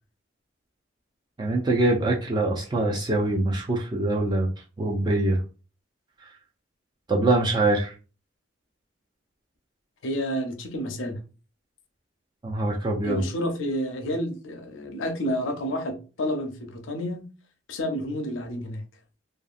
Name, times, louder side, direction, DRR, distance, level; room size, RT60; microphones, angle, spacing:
voice 1, 1.4-4.5 4.8-5.4 7.1-7.9 12.4-13.2, right 2 dB, 20° right, 0.3 m, -24 dB
voice 2, 10.0-11.2 13.0-17.3 17.7-18.8, equal, 80° left, 0.6 m, -30 dB
2.7 x 2.4 x 2.4 m
head